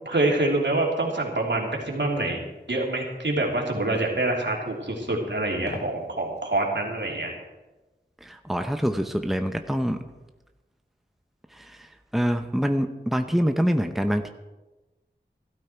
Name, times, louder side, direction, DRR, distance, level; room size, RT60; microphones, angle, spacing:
voice 1, 0.0-2.4 2.7-7.3, right 2 dB, 75° right, -1 dB, 3.2 m, -26 dB
sound 1, 2.2-2.4 4.0-4.2 5.6-6.0 6.4-6.5, left 2 dB, 65° left, 1.9 m, -37 dB
voice 2, 8.2-10.0 11.5-11.9 12.1-14.3, equal, ahead, 7 dB, 0.9 m, -25 dB
16.0 x 13.0 x 4.6 m, 1.1 s
wide cardioid pair, 45°, 19 cm